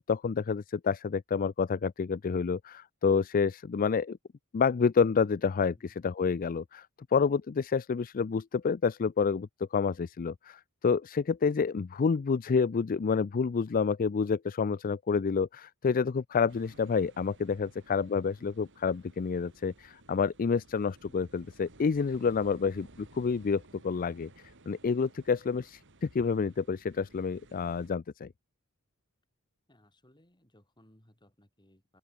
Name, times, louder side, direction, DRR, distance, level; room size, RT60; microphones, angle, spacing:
voice 1, 0.0-4.2 4.5-6.9 7.1-24.3 24.7-28.3, left 5 dB, 40° left, 0.4 m, -28 dB
sound 1, 16.5-27.9, right 2 dB, 60° right, 3.3 m, -57 dB
voice 2, 29.7-32.0, left 1 dB, 20° left, 4.7 m, -63 dB
open air
head